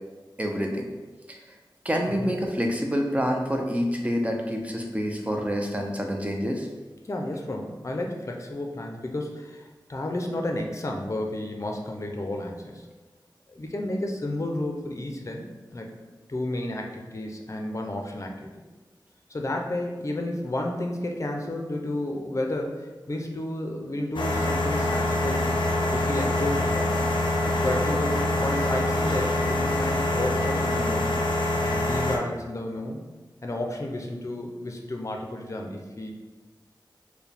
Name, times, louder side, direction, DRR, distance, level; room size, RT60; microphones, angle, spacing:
voice 1, 0.4-0.8 1.3-1.4 1.8-6.7, equal, 15° right, 1 dB, 0.6 m, -27 dB
voice 2, 7.1-12.9 13.5-15.4 15.7-15.9 16.3-18.5 19.3-25.5 25.9-26.9 27.6-31.2 31.6-33.0 33.4-36.1, left 1 dB, 40° left, 2 dB, 0.6 m, -31 dB
sound 1, 24.1-32.2, left 1 dB, 85° left, 0.5 m, -25 dB
sound 2, 24.8-30.8, right 1 dB, 50° right, 0.8 m, -42 dB
4.6 x 2.2 x 3.4 m, 1.3 s
wide cardioid pair, 60°, 8 cm